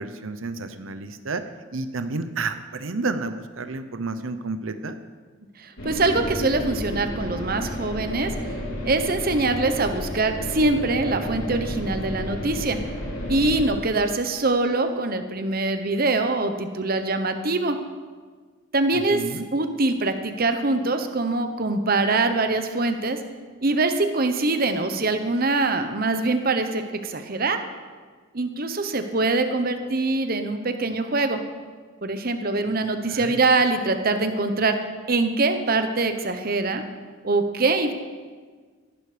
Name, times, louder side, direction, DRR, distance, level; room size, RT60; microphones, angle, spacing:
voice 1, 0.0-1.4 1.7-5.0 18.9-19.4 33.1-33.4, right 3 dB, 90° right, 9 dB, 0.8 m, -31 dB
voice 2, 5.6-8.6 8.8-12.8 13.3-17.8 18.7-19.2 19.5-23.2 23.6-27.6 28.3-31.4 32.0-34.8 35.1-36.8 37.2-37.9, right 3 dB, 50° right, 8 dB, 1.0 m, -23 dB
sound 1, 5.8-13.7, equal, 85° left, 3.7 m, -31 dB
17.5 x 11.5 x 5.1 m, 1.5 s
head